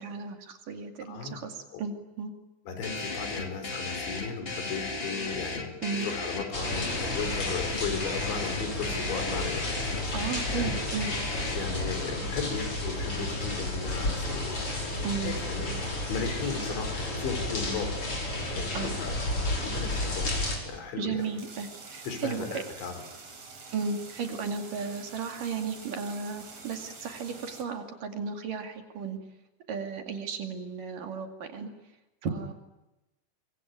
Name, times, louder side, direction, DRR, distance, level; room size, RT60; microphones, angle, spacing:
voice 1, 0.0-2.3 5.8-6.1 10.1-11.1 15.0-15.4 18.7-18.9 21.0-22.6 23.7-29.2 29.7-31.7 32.2-32.5, right 5 dB, 55° right, 5 dB, 3.7 m, -34 dB
voice 2, 1.1-1.4 1.7-1.8 2.7-9.6 10.0-10.8 11.4-14.6 15.2-18.0 18.5-19.2 19.6-20.4 20.6-21.3 22.0-23.0, left 6 dB, 90° left, 7 dB, 6.3 m, -36 dB
sound 1, 2.8-11.5, left 3 dB, 50° left, 0.6 m, -36 dB
sound 2, 6.5-20.6, left 1 dB, 30° left, 6.0 m, -32 dB
sound 3, 21.1-27.6, right 4 dB, 40° right, 4.7 m, -47 dB
25.0 x 24.5 x 9.5 m, 0.99 s
omnidirectional pair, 5.1 m